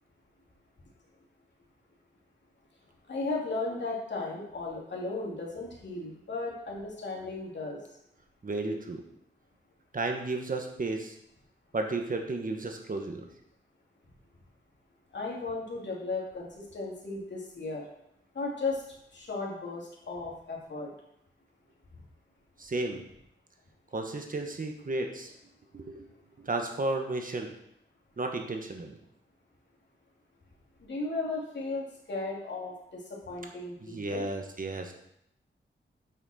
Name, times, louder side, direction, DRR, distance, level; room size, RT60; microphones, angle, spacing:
voice 1, 3.1-7.8 15.1-17.8 18.3-18.8 19.1-20.9 30.8-32.7 33.3-34.3, left 3 dB, 60° left, -3 dB, 2.7 m, -35 dB
voice 2, 8.4-9.0 9.9-11.1 11.7-13.3 22.6-23.0 23.9-25.3 25.7-26.1 26.4-27.5 28.2-29.0 33.8-34.9, right 2 dB, 45° right, 3 dB, 1.4 m, -33 dB
8.8 x 6.0 x 4.3 m, 0.77 s
cardioid pair, 75°, 20 cm